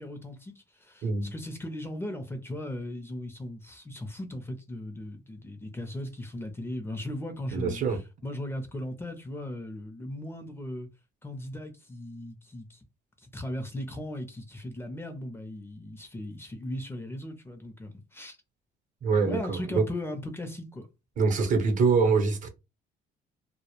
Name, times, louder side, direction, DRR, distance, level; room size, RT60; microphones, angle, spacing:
voice 1, 0.0-10.9 11.2-12.8 13.2-18.4 19.3-20.9, left 1 dB, 15° left, 0.5 m, -38 dB
voice 2, 7.5-8.0 19.0-19.8 21.2-22.5, right 4 dB, 50° right, 0.7 m, -24 dB
2.1 x 2.0 x 2.9 m
cardioid pair, 110°, 17 cm